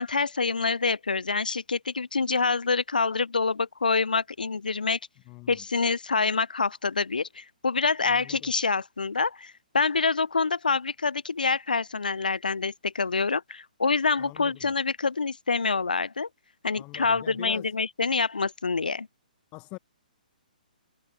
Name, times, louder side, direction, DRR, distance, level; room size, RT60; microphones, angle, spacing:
voice 1, 0.0-5.0 5.5-16.3 16.6-19.1, left 4 dB, 75° left, 0.4 m, -26 dB
voice 2, 5.3-5.7 8.1-8.5 14.2-14.7 16.8-17.7 19.5-19.8, left 26 dB, 25° left, 0.6 m, -44 dB
figure-of-eight pair, 125°, 5 cm